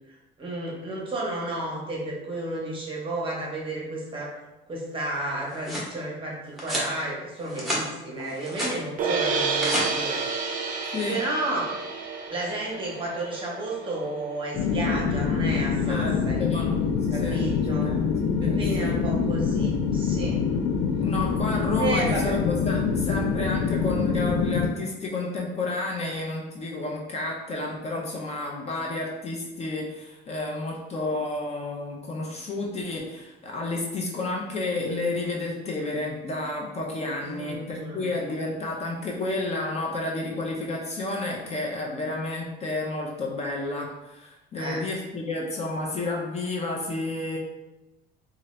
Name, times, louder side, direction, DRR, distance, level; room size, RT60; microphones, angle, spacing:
voice 1, 0.4-4.4 4.7-10.2 11.1-11.7 12.3-16.5 17.1-17.9 18.6-20.4 21.8-22.3 37.2-38.2 44.5-44.8, right 2 dB, 25° right, -3 dB, 0.8 m, -32 dB
sound 1, 5.2-5.9 6.6-6.9 7.4-7.8 8.2-8.8 9.3-9.8, equal, ahead, 0.9 m, -30 dB
sound 2, 9.0-15.1, right 4 dB, 45° right, 0.5 m, -30 dB
sound 3, 14.5-24.7, left 5 dB, 85° left, 0.4 m, -25 dB
voice 2, 15.9-16.7 17.1-17.4 17.8-18.0 18.4-19.0 20.4-20.7 21.0-47.4, left 2 dB, 35° left, -2 dB, 0.5 m, -31 dB
2.7 x 2.5 x 3.1 m, 0.98 s
cardioid pair, 140°, 19 cm